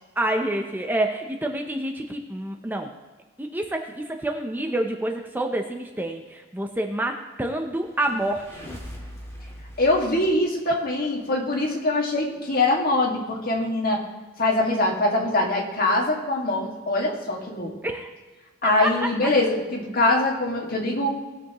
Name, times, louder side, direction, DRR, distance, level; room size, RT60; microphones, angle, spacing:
voice 1, 0.2-2.9 3.4-8.6 17.8-18.1 18.8-19.1, right 1 dB, 10° right, 4 dB, 0.6 m, -28 dB
sound 1, 7.6-11.2, equal, 15° left, 1.7 m, -42 dB
voice 2, 9.8-14.0 14.4-17.7 18.6-21.1, left 2 dB, 50° left, -1 dB, 2.0 m, -23 dB
19.0 x 6.9 x 3.0 m, 1.3 s
head